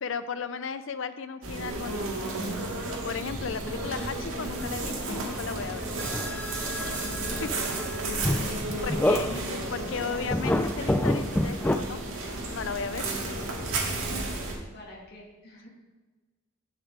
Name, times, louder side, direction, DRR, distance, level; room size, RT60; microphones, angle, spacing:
voice 1, 0.0-2.2 3.0-5.9 6.9-7.5 8.8-12.0 12.4-13.1, left 5 dB, 65° left, 12 dB, 0.5 m, -35 dB
sound 1, 1.4-14.5, right 2 dB, 75° right, 2.0 m, -33 dB
sound 2, 3.6-10.0, equal, 30° right, 3.1 m, -50 dB
sound 3, 3.7-5.3 5.6-9.7 10.2-11.8, left 1 dB, 10° left, 0.3 m, -29 dB
voice 2, 8.1-8.8 9.1-10.3 13.9-15.7, equal, 50° left, -2 dB, 2.2 m, -46 dB
11.0 x 6.5 x 3.7 m, 1.3 s
head